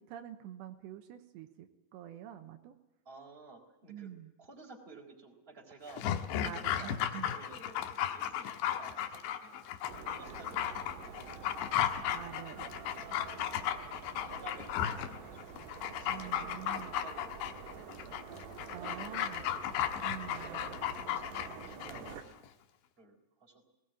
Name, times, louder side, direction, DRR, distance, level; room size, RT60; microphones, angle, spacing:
voice 1, 0.1-2.7 3.9-4.3 6.4-7.4 12.1-12.7 16.0-16.9 18.7-19.4 20.0-20.7, right 10 dB, 80° right, 6 dB, 3.2 m, -46 dB
voice 2, 3.0-4.1 4.4-7.0 7.3-9.7 10.1-11.7 12.9-13.6 13.9-19.2 20.0-20.1 21.0-22.4 23.0-23.6, right 3 dB, 15° right, 1 dB, 3.5 m, -54 dB
Dog, 5.9-22.1 22.4-22.5, left 10 dB, 90° left, 3.4 m, -35 dB
sound 1, 9.9-22.2, right 6 dB, 55° right, 3.0 m, -48 dB
19.0 x 19.0 x 9.1 m, 1.1 s
omnidirectional pair, 5.0 m